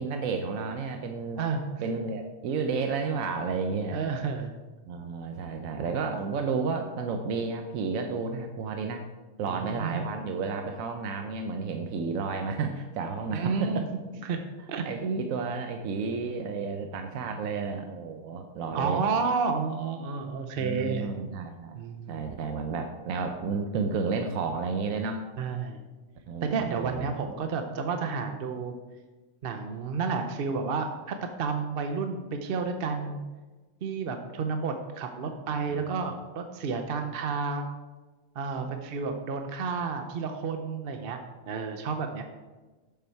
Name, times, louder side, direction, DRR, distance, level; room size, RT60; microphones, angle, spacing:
voice 1, 0.0-1.4 1.8-4.1 4.9-9.0 9.4-13.8 14.9-19.0 20.5-21.8 22.1-25.3 26.3-27.2 35.7-35.9 38.6-38.7, right 4 dB, 85° right, 5 dB, 1.1 m, -32 dB
voice 2, 1.4-1.8 3.9-4.5 9.5-10.0 13.3-13.8 14.2-14.4 14.7-14.8 18.7-21.1 21.7-22.3 25.4-25.8 26.4-28.7 29.4-33.2 33.8-37.7 38.3-42.2, right 5 dB, 55° right, 6 dB, 0.8 m, -31 dB
7.5 x 7.1 x 4.6 m, 1.2 s
omnidirectional pair, 1.4 m